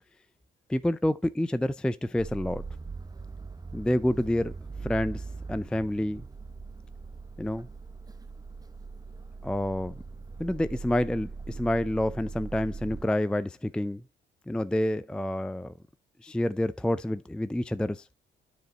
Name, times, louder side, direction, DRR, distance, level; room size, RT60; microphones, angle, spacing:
voice 1, 0.7-2.6 3.7-4.5 4.8-6.3 7.4-7.7 9.4-9.9 10.4-14.0 14.5-15.7 16.2-18.1, left 1 dB, 5° left, 0.4 m, -28 dB
sound 1, 2.2-13.1, right 4 dB, 20° right, 0.9 m, -41 dB
9.4 x 5.1 x 3.9 m
cardioid pair, 90°, 20 cm